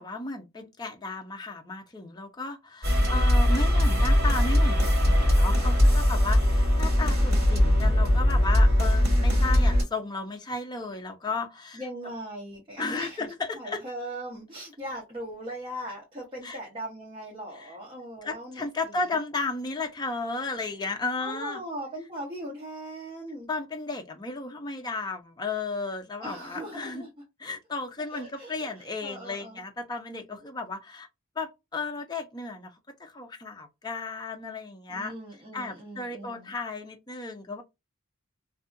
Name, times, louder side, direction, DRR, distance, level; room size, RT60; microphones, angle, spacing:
voice 1, 0.0-11.8 12.8-13.8 16.4-16.6 17.6-17.7 18.2-21.6 23.5-27.1 27.4-31.1 31.4-32.7 33.0-35.1 35.5-37.6, left 3 dB, 20° left, 0.4 m, -34 dB
sound 1, 2.8-9.8, left 1 dB, 50° right, 1.6 m, -21 dB
voice 2, 11.7-13.3 13.5-19.2 21.2-23.5 26.2-27.1 28.1-29.6 34.9-36.5, right 1 dB, 25° right, 0.8 m, -39 dB
2.6 x 2.4 x 2.5 m
head